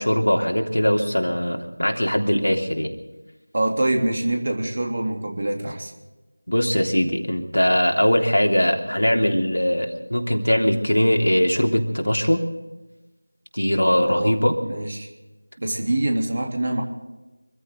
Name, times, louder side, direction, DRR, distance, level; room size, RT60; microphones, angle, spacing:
voice 1, 0.0-2.9 6.5-12.4 13.5-14.6, equal, 85° left, 2 dB, 3.2 m, -21 dB
voice 2, 3.5-5.9 13.9-14.4 14.6-15.1 15.6-16.8, right 1 dB, 40° right, 2 dB, 3.1 m, -25 dB
25.5 x 14.5 x 3.9 m, 1.1 s
figure-of-eight pair, 170°, 0 cm